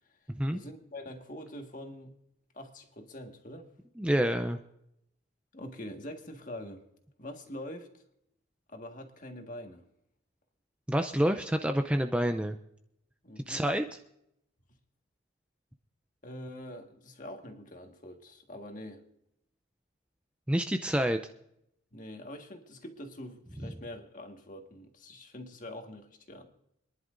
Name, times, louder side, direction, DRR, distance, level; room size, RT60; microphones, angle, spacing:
voice 1, 0.5-2.2 2.5-3.7 5.5-6.8 7.2-8.0 8.7-9.9 13.2-13.7 16.2-19.0 21.9-26.5, left 1 dB, 40° left, 1.7 m, -44 dB
voice 2, 4.0-4.6 10.9-12.6 13.5-13.8 20.5-21.2, equal, 5° right, 0.4 m, -28 dB
25.5 x 11.0 x 2.6 m
head